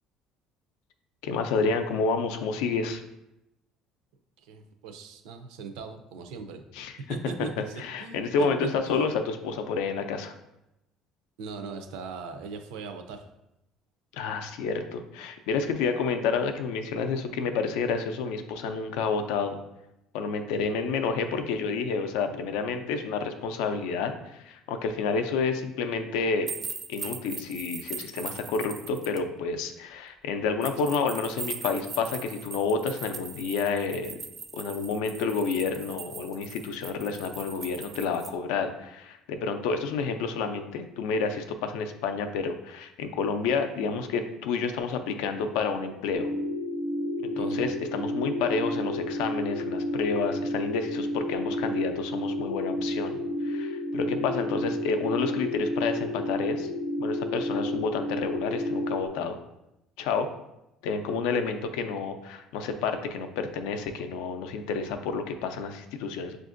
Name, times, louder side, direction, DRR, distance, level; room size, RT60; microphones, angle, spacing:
voice 1, 1.2-3.0 6.7-6.9 7.8-10.3 14.1-19.6 20.1-26.5 26.9-34.2 34.5-46.3 47.2-56.7 57.0-59.4 60.0-60.3 60.8-66.4, left 5 dB, 90° left, 7 dB, 0.4 m, -29 dB
voice 2, 4.4-6.6 7.1-9.0 11.4-13.2 47.3-47.6, right 4 dB, 85° right, 7 dB, 0.5 m, -39 dB
sound 1, 26.5-29.2 30.6-38.3, right 5 dB, 25° right, 0.4 m, -40 dB
sound 2, 46.1-59.1, left 1 dB, 40° left, 0.6 m, -31 dB
6.1 x 2.5 x 2.5 m, 0.88 s
cardioid pair, 140°, 0 cm